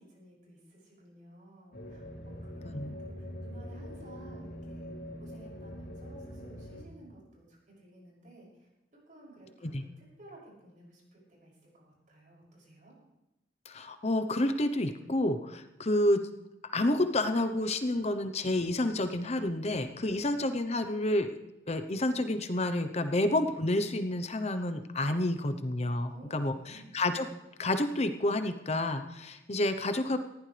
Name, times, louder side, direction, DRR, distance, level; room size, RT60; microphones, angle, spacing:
voice 1, 0.0-4.9 5.2-8.7 9.1-12.9 26.1-27.0, right 2 dB, 50° right, -4 dB, 6.8 m, -55 dB
sound 1, 1.7-6.8, equal, 65° left, 3.4 m, -43 dB
voice 2, 13.7-16.2 16.7-21.4 21.7-27.3 27.6-30.2, left 1 dB, 40° left, 8 dB, 0.9 m, -29 dB
19.5 x 15.0 x 3.4 m, 0.97 s
head